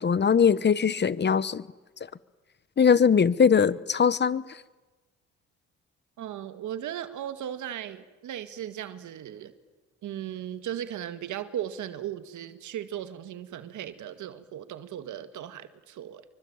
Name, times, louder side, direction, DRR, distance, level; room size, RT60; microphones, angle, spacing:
voice 1, 0.0-1.6 2.8-4.6, left 6 dB, 35° left, 1.1 m, -21 dB
voice 2, 6.2-9.5 10.0-16.3, right 10 dB, 75° right, 2.0 m, -37 dB
26.5 x 24.0 x 8.9 m
cardioid pair, 90°, 30 cm